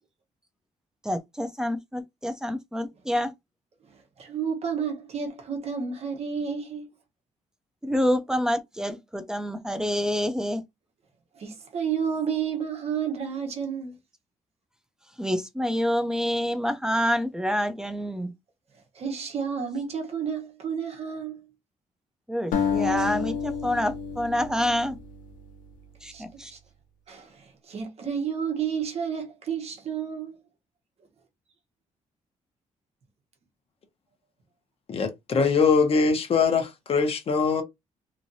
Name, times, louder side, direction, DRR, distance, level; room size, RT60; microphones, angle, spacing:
voice 1, 1.0-3.3 7.8-10.6 15.2-18.3 22.3-25.0 26.0-26.5, equal, 5° right, 0.5 m, -27 dB
voice 2, 4.2-6.9 11.4-13.9 18.9-21.4 26.1-26.6 27.1-30.4, right 7 dB, 50° right, 1.1 m, -31 dB
sound 1, 22.5-25.7, left 7 dB, 90° left, 0.7 m, -30 dB
voice 3, 34.9-37.6, left 5 dB, 45° left, 1.0 m, -22 dB
3.0 x 2.6 x 2.7 m
cardioid pair, 140°, 13 cm